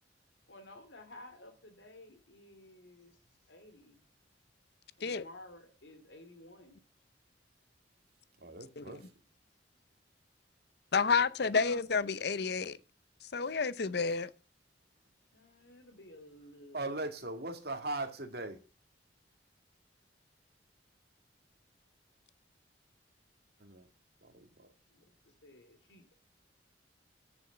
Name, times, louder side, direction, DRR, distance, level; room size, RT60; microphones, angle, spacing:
voice 1, 0.5-3.2 3.5-4.0 5.0-6.8 15.3-16.9 24.9-26.0, left 1 dB, 80° left, 2.5 m, -54 dB
voice 2, 8.4-9.1 16.7-18.6 23.6-23.9 24.2-24.7, right 2 dB, 60° right, 2.3 m, -39 dB
voice 3, 10.9-12.8 13.3-14.3, left 5 dB, 60° left, 0.7 m, -30 dB
10.5 x 7.2 x 6.8 m
head